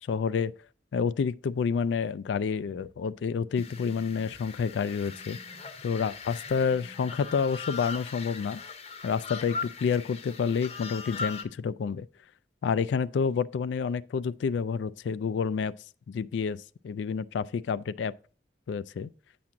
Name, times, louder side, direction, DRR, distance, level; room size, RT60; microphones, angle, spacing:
voice 1, 0.1-0.5 0.9-5.4 5.8-8.6 9.0-12.1 12.6-15.7 16.1-18.1 18.7-19.1, left 6 dB, 80° left, 0.3 m, -29 dB
sound 1, 2.7-7.7, right 2 dB, 40° right, 0.6 m, -54 dB
sound 2, 3.5-11.4, left 5 dB, 35° left, 0.7 m, -40 dB
8.5 x 6.0 x 3.7 m
head